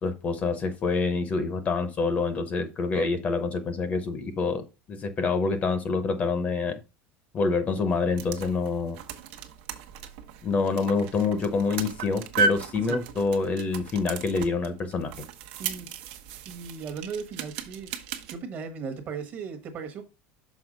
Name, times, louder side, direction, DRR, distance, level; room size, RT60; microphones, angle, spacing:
voice 1, 0.0-6.8 7.3-9.0 10.4-15.1, left 4 dB, 25° left, 0.7 m, -27 dB
sound 1, 7.9-18.4, right 4 dB, 65° right, 1.0 m, -35 dB
voice 2, 16.4-17.9 18.3-20.0, right 5 dB, 30° right, 1.1 m, -37 dB
6.3 x 4.6 x 5.0 m
cardioid pair, 170°, 6 cm